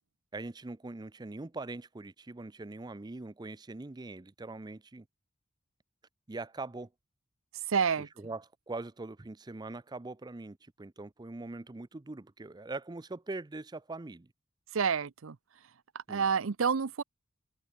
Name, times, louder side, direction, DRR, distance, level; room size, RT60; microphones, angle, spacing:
voice 1, 0.3-5.0 6.3-6.9 8.2-14.3 16.1-16.2, right 2 dB, 20° right, 0.5 m, -42 dB
voice 2, 7.7-8.1 14.7-15.4 15.9-17.0, right 6 dB, 75° right, 0.6 m, -29 dB
head